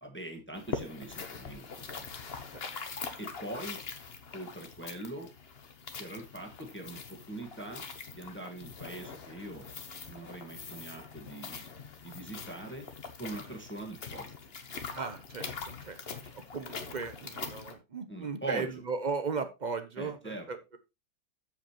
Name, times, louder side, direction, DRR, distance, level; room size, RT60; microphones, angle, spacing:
voice 1, 0.0-2.1 3.2-3.8 4.3-5.3 5.9-7.8 8.1-9.7 10.1-12.8 13.2-14.3 18.1-18.7 20.0-20.5, right 2 dB, 5° left, 2 dB, 1.5 m, -42 dB
wet footsteps, 0.6-17.7, left 5 dB, 40° left, 1.1 m, -43 dB
voice 2, 14.9-20.8, right 5 dB, 45° right, 9 dB, 0.6 m, -37 dB
14.0 x 5.2 x 3.0 m, 0.24 s
omnidirectional pair, 2.0 m